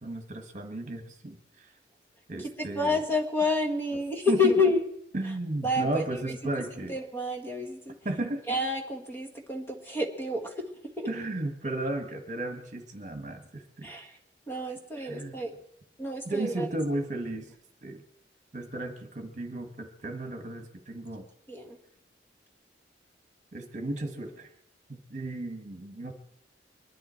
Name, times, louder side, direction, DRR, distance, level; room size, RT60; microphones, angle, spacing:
voice 1, 0.0-1.7 2.3-3.0 4.3-4.5 5.1-6.9 8.0-8.4 11.1-13.9 15.0-15.4 16.2-17.5 17.8-18.0 18.5-21.2 23.5-24.5 24.9-26.1, right 2 dB, 45° right, 6 dB, 1.6 m, -34 dB
voice 2, 2.6-4.8 5.6-6.0 6.9-7.9 8.5-10.7 11.0-11.1 13.8-14.1 14.5-15.5 16.0-16.7 21.5-21.8, left 2 dB, 15° left, 2 dB, 1.6 m, -29 dB
23.0 x 11.5 x 4.5 m, 0.73 s
head